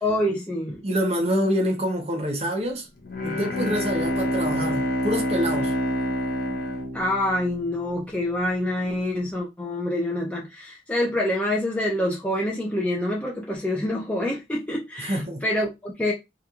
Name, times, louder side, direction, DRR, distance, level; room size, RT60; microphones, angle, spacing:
voice 1, 0.0-0.8 6.9-16.1, left 1 dB, 10° left, 0.4 m, -26 dB
voice 2, 0.8-2.9 3.2-5.7 15.0-15.4, equal, 35° right, 0.7 m, -26 dB
Bowed string instrument, 3.0-7.9, equal, 50° left, 0.6 m, -27 dB
2.8 x 2.2 x 2.3 m
head